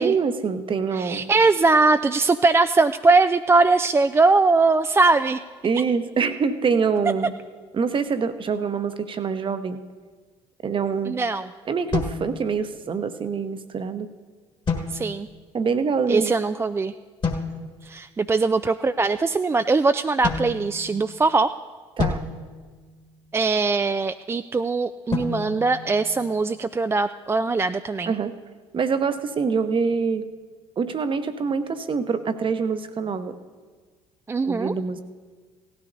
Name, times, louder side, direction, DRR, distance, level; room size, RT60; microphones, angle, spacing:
voice 1, 0.0-1.3 5.6-7.3 7.7-9.8 10.6-11.2 11.7-14.1 15.5-16.3 22.0-22.2 28.1-28.3 28.7-30.3 30.8-33.4 34.4-35.0, right 5 dB, 35° right, 10 dB, 0.9 m, -25 dB
voice 2, 0.9-5.4 11.1-11.5 14.9-15.3 16.1-16.9 17.8-21.5 23.3-28.2 34.3-34.7, right 3 dB, 15° right, 9 dB, 0.3 m, -21 dB
sound 1, 11.9-13.0 14.7-15.5 17.2-17.9 20.2-21.3 22.0-23.5 25.1-26.6, left 4 dB, 30° left, 1.7 m, -31 dB
17.5 x 12.5 x 2.7 m, 1.5 s
hypercardioid pair, 55°, 15 cm